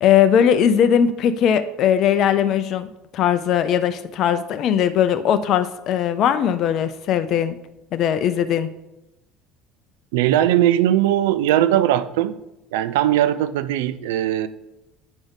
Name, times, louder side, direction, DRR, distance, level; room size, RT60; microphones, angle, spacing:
voice 1, 0.0-2.9 3.1-7.6 7.9-8.7, left 9 dB, 50° left, 11 dB, 0.5 m, -19 dB
voice 2, 10.1-12.4 12.7-14.5, right 12 dB, 70° right, 14 dB, 0.4 m, -19 dB
9.1 x 5.2 x 3.6 m, 0.94 s
hypercardioid pair, 65°, 0 cm